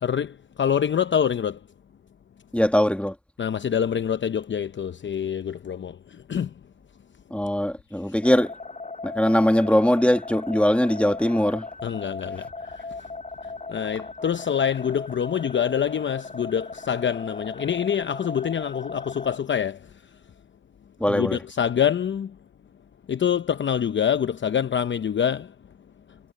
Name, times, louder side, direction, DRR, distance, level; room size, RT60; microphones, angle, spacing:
voice 1, 0.0-1.6 3.4-6.5 11.8-13.1 13.4-19.9 21.1-22.4 23.1-25.5, left 8 dB, 40° left, 0.8 m, -26 dB
voice 2, 2.5-3.2 7.3-8.5 9.0-11.7 21.0-21.4, left 1 dB, 5° left, 1.9 m, -21 dB
sound 1, 8.2-19.4, left 3 dB, 25° left, 6.7 m, -38 dB
cardioid pair, 90°, 30 cm